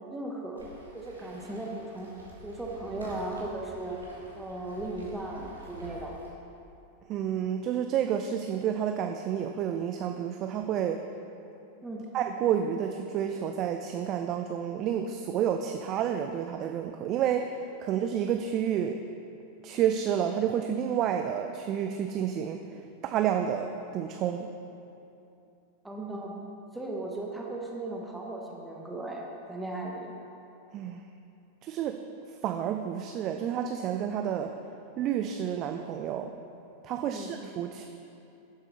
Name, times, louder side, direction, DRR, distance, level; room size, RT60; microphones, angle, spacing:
voice 1, 0.1-0.7 0.9-2.1 2.4-4.0 4.4-6.2 11.8-12.0 25.8-26.3 26.7-29.2 29.5-30.1 37.0-37.3, right 2 dB, 5° right, -1 dB, 1.1 m, -37 dB
Waves surf, 0.5-6.3, equal, 80° right, 1.8 m, -48 dB
voice 2, 7.1-11.0 12.1-19.0 19.6-24.5 30.7-31.0 31.6-32.0 32.3-34.5 35.0-36.3 36.8-37.9, right 9 dB, 35° right, 6 dB, 0.4 m, -30 dB
11.0 x 7.3 x 4.2 m, 2.7 s
figure-of-eight pair, 90°, 0 cm